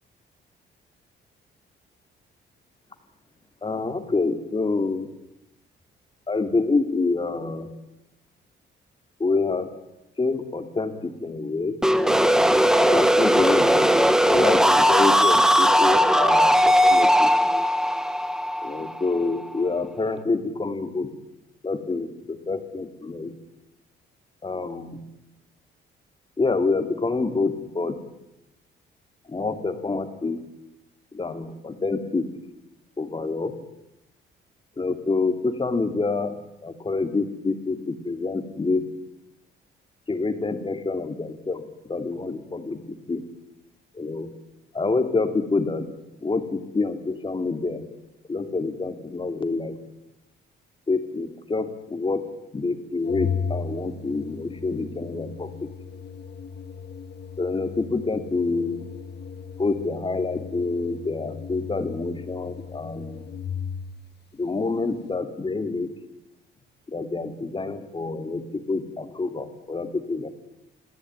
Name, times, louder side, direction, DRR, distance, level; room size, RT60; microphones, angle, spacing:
voice 1, 3.6-5.1 6.3-7.7 9.2-9.7 10.2-11.8 12.8-13.9 14.2-17.3 18.6-21.2 21.6-23.4 24.4-25.0 26.4-28.0 29.3-30.4 31.1-32.3 33.0-33.6 34.8-36.3 36.6-38.8 40.1-43.2 43.9-44.3 44.7-45.9 46.2-47.9 48.3-49.8 50.9-52.3 52.5-55.5 57.4-59.0 59.6-63.2 64.3-66.1 66.9-70.3, left 3 dB, 25° left, 8 dB, 2.9 m, -27 dB
sound 1, 11.8-19.5, equal, 5° right, 1.2 m, -18 dB
Organ, 53.1-64.1, left 6 dB, 55° left, 1.7 m, -36 dB
27.0 x 16.0 x 9.7 m, 0.91 s
cardioid pair, 90°, 20 cm